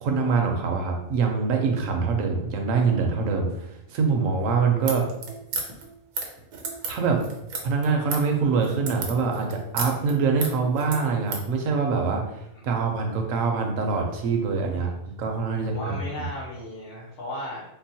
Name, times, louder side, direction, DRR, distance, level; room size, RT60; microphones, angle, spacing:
voice 1, 0.0-5.1 6.9-7.2 7.6-16.3, right 5 dB, 70° right, 2 dB, 0.9 m, -24 dB
sound 1, 4.8-11.5, right 4 dB, 85° right, 1.1 m, -34 dB
voice 2, 15.6-17.6, left 1 dB, 80° left, -9 dB, 1.3 m, -36 dB
3.7 x 2.1 x 2.7 m, 0.83 s
omnidirectional pair, 1.5 m